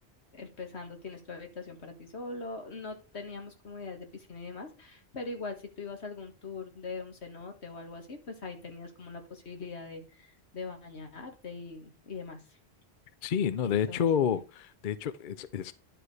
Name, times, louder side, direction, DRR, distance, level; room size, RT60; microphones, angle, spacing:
voice 1, 0.3-12.6 13.6-14.0, left 3 dB, 85° left, 2.1 m, -42 dB
voice 2, 13.2-15.7, left 8 dB, 55° left, 0.7 m, -29 dB
11.0 x 4.8 x 4.8 m
omnidirectional pair, 1.1 m